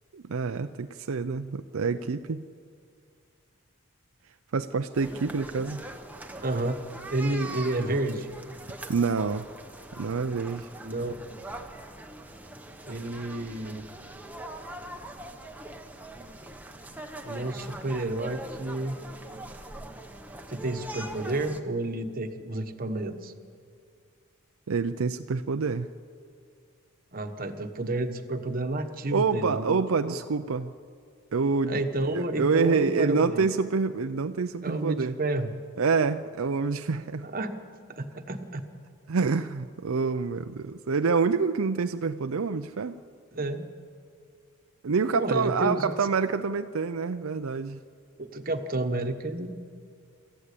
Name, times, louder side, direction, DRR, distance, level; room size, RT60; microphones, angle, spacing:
voice 1, 0.1-2.4 4.5-5.8 8.9-9.5 10.0-10.7 24.7-25.9 29.1-30.7 31.3-31.8 32.1-35.1 35.8-37.3 39.1-43.0 44.8-47.8, right 4 dB, 75° right, 8 dB, 0.5 m, -27 dB
sound 1, 4.9-21.6, right 1 dB, 5° right, 1.0 m, -42 dB
voice 2, 6.4-6.8 7.1-8.3 10.8-11.2 12.9-13.8 17.2-19.0 20.5-23.3 27.1-30.2 31.7-33.5 34.6-35.5 37.2-37.6 37.9-38.6 43.3-43.7 45.1-46.0 48.2-49.5, right 2 dB, 40° right, 7 dB, 1.2 m, -30 dB
26.0 x 14.0 x 8.4 m, 2.3 s
head